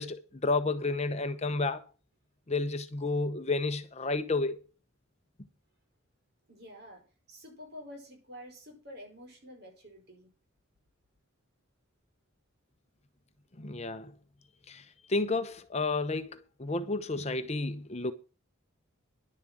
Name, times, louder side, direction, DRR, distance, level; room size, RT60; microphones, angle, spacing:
voice 1, 0.0-1.8 2.5-4.6 13.6-14.1 14.7-18.1, left 3 dB, 30° left, 0.8 m, -31 dB
voice 2, 6.5-7.0 7.3-10.3, left 1 dB, 50° right, 4.8 m, -48 dB
11.0 x 7.3 x 7.5 m
head